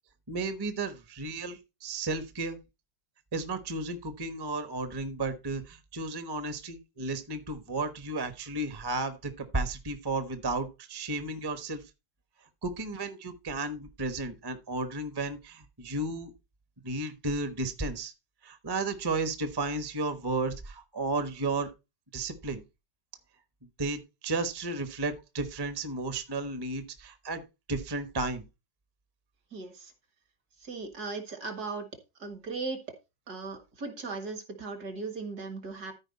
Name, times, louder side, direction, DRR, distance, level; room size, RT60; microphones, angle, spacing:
voice 1, 0.3-2.6 3.3-11.8 12.6-16.3 16.8-18.1 18.4-21.7 22.1-22.6 23.8-27.4 27.7-28.4, right 2 dB, 15° right, 10 dB, 0.9 m, -33 dB
voice 2, 29.5-29.9 30.6-31.9 32.2-33.0 33.3-35.9, right 4 dB, 60° right, 8 dB, 2.1 m, -37 dB
13.5 x 5.0 x 4.1 m, 0.25 s
omnidirectional pair, 1.9 m